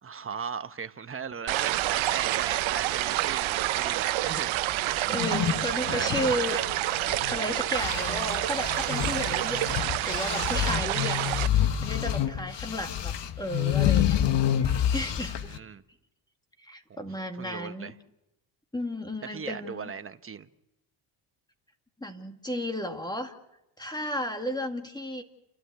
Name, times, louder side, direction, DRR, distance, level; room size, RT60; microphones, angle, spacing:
voice 1, 0.0-5.2 5.9-6.7 15.4-15.8 16.9-17.0 17.4-17.9 19.3-20.5, right 6 dB, 25° right, 1.0 m, -38 dB
sound 1, 1.5-11.5, right 16 dB, 75° right, 0.8 m, -28 dB
sound 2, 5.0-7.4 7.7-15.6, left 10 dB, 60° left, 1.2 m, -28 dB
voice 2, 5.1-6.6 7.3-14.2 14.6-15.6 16.6-17.9 18.7-19.9 22.0-23.4 23.8-25.2, equal, 10° left, 2.2 m, -34 dB
30.0 x 12.5 x 8.3 m
cardioid pair, 95°, 48 cm